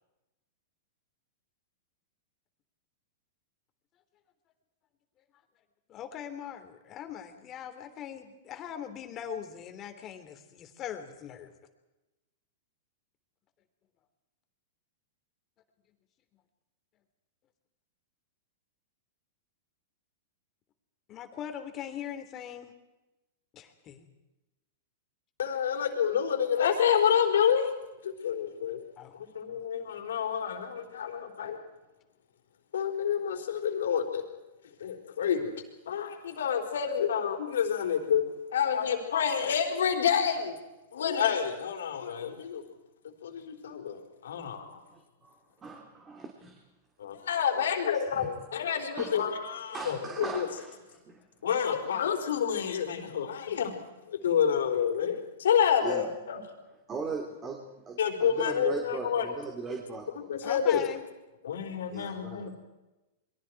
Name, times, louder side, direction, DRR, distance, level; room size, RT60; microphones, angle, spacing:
voice 1, 5.9-11.5 21.1-22.7 23.5-24.1 29.0-29.1 60.4-61.0, left 9 dB, 30° left, 7 dB, 3.1 m, -40 dB
voice 2, 25.4-27.7 28.0-28.8 29.1-31.6 32.7-34.2 34.8-38.3 38.5-40.6 40.9-42.6 43.2-44.8 47.0-50.5 51.4-53.8 54.1-56.4 58.0-59.3 60.2-60.9 61.4-62.5, left 8 dB, 85° left, 4 dB, 4.4 m, -28 dB
voice 3, 44.9-46.6 47.5-47.7 48.2-48.3 49.0-49.1 49.7-51.2 55.8-56.1 56.9-60.3 61.9-62.5, right 4 dB, 20° right, 1 dB, 3.4 m, -39 dB
28.5 x 23.0 x 4.8 m, 1.0 s
hypercardioid pair, 135°, 0 cm